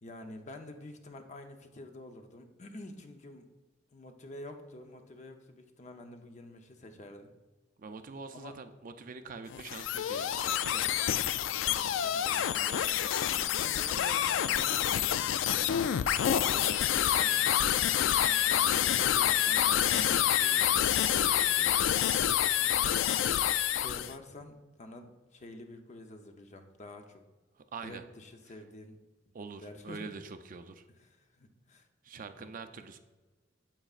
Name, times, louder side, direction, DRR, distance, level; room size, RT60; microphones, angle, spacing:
voice 1, 0.0-3.5 3.9-7.3 8.3-8.5 11.8-12.8 13.6-16.7 18.2-19.7 22.6-27.2 27.8-29.0 29.6-30.0 30.9-31.9 32.1-32.5, left 1 dB, 40° left, 5 dB, 0.7 m, -48 dB
voice 2, 7.8-10.8 17.1-17.4 19.7-22.0 27.6-28.0 29.3-30.8 32.0-33.0, right 4 dB, 45° right, 8 dB, 0.5 m, -45 dB
sound 1, 9.5-24.1, left 11 dB, 80° left, 0.3 m, -27 dB
sound 2, 11.5-20.3, left 1 dB, 60° left, 1.0 m, -54 dB
8.9 x 7.9 x 2.4 m, 1.3 s
head